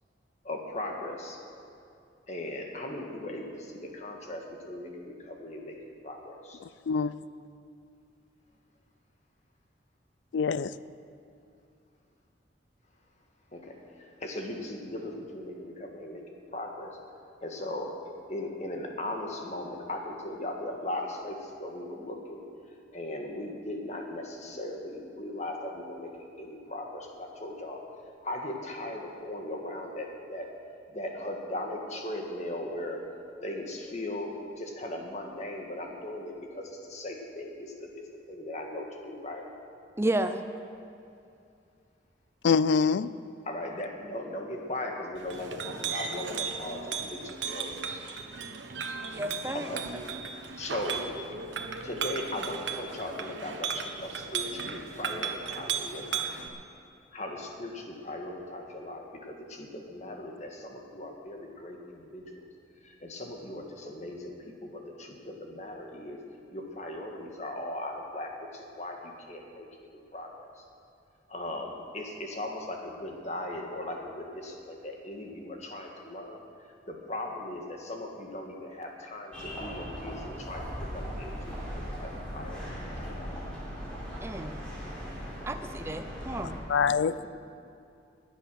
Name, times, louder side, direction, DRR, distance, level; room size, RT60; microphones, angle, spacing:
voice 1, 0.4-1.4 2.3-5.8 6.0-6.6 13.5-16.2 16.5-17.0 17.4-17.9 18.3-22.4 22.9-27.8 28.2-30.5 30.9-33.0 33.4-39.4 43.5-48.0 49.5-49.8 50.6-51.0 51.8-56.3 57.1-62.4 62.8-66.2 66.5-69.7 70.1-70.6 71.3-76.4 76.9-83.3 87.2-87.3, left 1 dB, 40° left, 1.7 m, -38 dB
voice 2, 6.6-7.1 10.3-10.7 42.4-43.1 86.7-87.1, left 5 dB, 80° left, 0.4 m, -25 dB
voice 3, 40.0-40.5 49.1-49.7 84.2-84.6 85.5-86.6, right 1 dB, 15° right, 0.5 m, -31 dB
Chink clink, 45.1-56.5, right 6 dB, 90° right, 1.1 m, -36 dB
sound 1, 79.3-86.6, equal, 5° left, 4.0 m, -38 dB
20.0 x 8.2 x 6.3 m
head